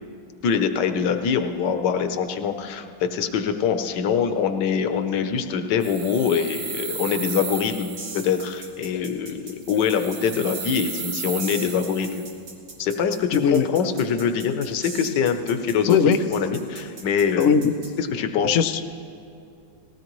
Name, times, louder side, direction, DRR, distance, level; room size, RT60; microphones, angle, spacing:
voice 1, 0.4-12.2 12.8-17.5 18.0-18.6, left 7 dB, 70° left, 7 dB, 1.3 m, -24 dB
sound 1, 5.8-8.6 9.6-12.4, right 6 dB, 55° right, 1.3 m, -34 dB
sound 2, 8.0-17.9, right 3 dB, 85° right, 2.6 m, -40 dB
voice 2, 13.3-13.7 15.9-16.2 17.4-17.7 18.4-19.0, left 7 dB, 85° left, 8 dB, 0.7 m, -19 dB
19.5 x 16.5 x 3.0 m, 2.5 s
omnidirectional pair, 2.1 m